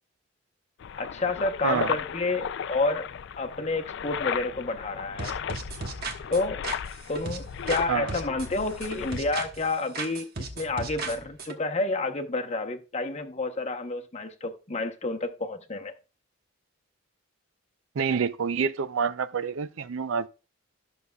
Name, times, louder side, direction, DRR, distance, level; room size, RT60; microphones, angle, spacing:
sound 1, 0.8-9.2, left 7 dB, 55° left, 0.3 m, -35 dB
voice 1, 1.0-3.1 3.4-5.4 6.3-6.6 7.1-15.9, left 3 dB, 30° left, 0.8 m, -30 dB
voice 2, 1.6-2.0 7.9-8.1 18.0-20.3, right 6 dB, 65° right, 0.4 m, -27 dB
sound 2, 5.2-7.8 8.1-9.7 9.9-11.6, right 3 dB, 45° right, 1.2 m, -36 dB
13.0 x 6.7 x 2.3 m
head